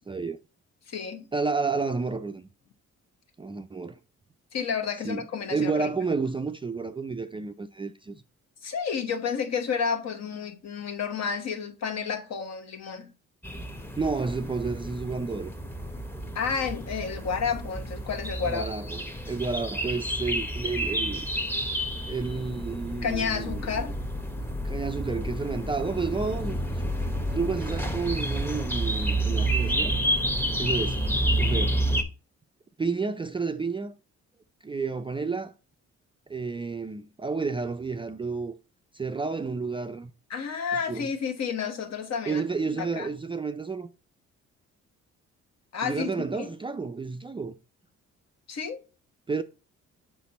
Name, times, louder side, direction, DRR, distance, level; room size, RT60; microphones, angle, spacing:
voice 1, 0.1-0.4 1.3-2.5 3.4-4.0 5.0-8.2 14.0-15.5 18.4-21.3 22.1-23.8 24.6-26.8 27.3-29.9 30.6-31.0 31.4-31.8 32.8-33.9 34.6-35.5 36.3-38.5 38.9-40.1 40.9-41.1 42.3-43.9 45.8-47.6 49.3-49.4, right 4 dB, 15° right, 0.4 m, -31 dB
voice 2, 0.9-1.3 4.5-5.9 8.6-13.1 16.3-18.6 23.0-24.0 40.3-42.4 42.8-43.1 45.7-46.1 46.3-46.5 48.5-48.8, left 6 dB, 60° left, 1.1 m, -31 dB
sound 1, 13.4-32.0, right 1 dB, 5° left, 0.8 m, -30 dB
5.7 x 4.2 x 4.1 m
cardioid pair, 90°, 30 cm